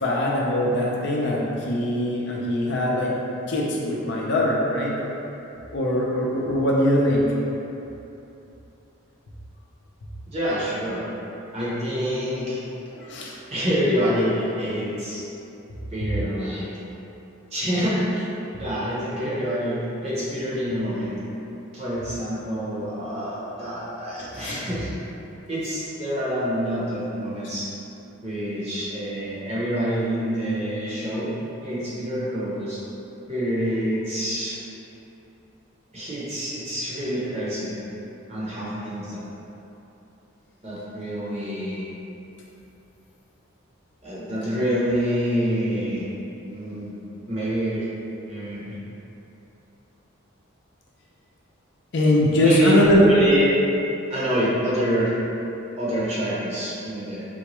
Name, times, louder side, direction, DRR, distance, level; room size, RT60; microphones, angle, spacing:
voice 1, 0.0-3.1 3.5-4.9 5.7-7.3 12.9-13.3 16.0-16.1 24.2-24.6 51.9-53.0, left 1 dB, 55° left, -4 dB, 0.5 m, -22 dB
voice 2, 10.3-11.0 11.5-12.6 13.5-15.2 15.9-16.6 17.5-18.3 18.6-21.2 21.7-24.9 25.5-27.7 28.2-31.3 31.6-32.8 33.3-34.6 35.9-37.8 38.3-39.2 40.6-41.9 44.0-46.1 46.4-46.9 47.3-47.9 48.3-48.8 52.4-52.7 53.0-53.5 54.1-55.1 55.8-57.3, equal, 30° right, -9 dB, 0.7 m, -26 dB
3.8 x 2.3 x 3.0 m, 3.0 s
head